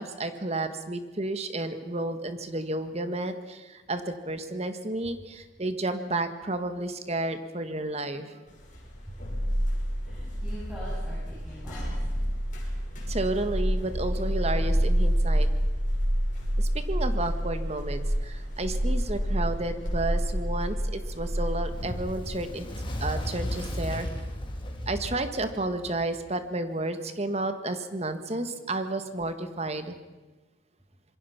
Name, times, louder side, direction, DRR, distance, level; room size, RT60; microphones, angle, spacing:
voice 1, 0.0-8.4 13.1-15.5 16.6-22.7 23.0-24.1 24.9-29.9, right 2 dB, 35° right, 9 dB, 1.6 m, -31 dB
sound 1, 8.6-22.1, equal, 40° left, 5.8 m, -28 dB
voice 2, 10.0-12.3, equal, 5° right, -9 dB, 7.9 m, -44 dB
Fire, 21.6-26.2, left 1 dB, 25° left, 2.8 m, -34 dB
26.0 x 22.0 x 5.9 m, 1.2 s
head